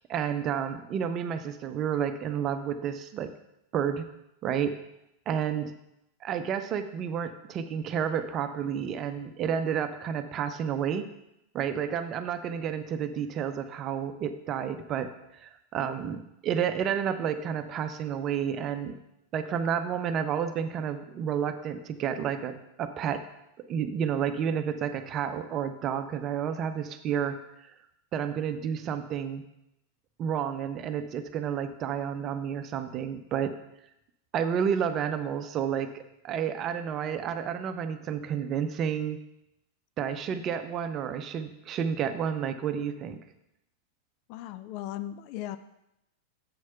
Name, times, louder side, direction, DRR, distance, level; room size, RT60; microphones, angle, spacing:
voice 1, 0.0-3.3 3.7-4.0 4.4-4.8 5.3-5.7 6.2-11.0 11.5-19.0 19.3-23.2 23.7-27.4 28.1-29.4 30.2-33.5 34.3-39.2 40.0-43.2, right 8 dB, 30° right, 9 dB, 0.7 m, -30 dB
voice 2, 44.3-45.6, left 13 dB, 45° left, 12 dB, 0.4 m, -37 dB
7.7 x 6.4 x 5.7 m, 0.84 s
figure-of-eight pair, 90°, 0 cm